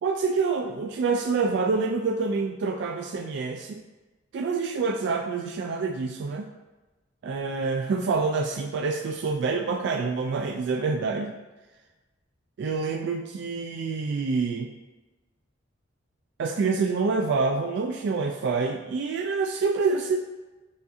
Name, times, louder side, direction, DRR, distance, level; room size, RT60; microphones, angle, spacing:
voice 1, 0.0-3.8 4.3-6.5 7.2-11.4 12.6-14.7 16.4-20.2, right 4 dB, 60° right, 2 dB, 0.3 m, -27 dB
7.0 x 2.5 x 2.6 m, 1.1 s
head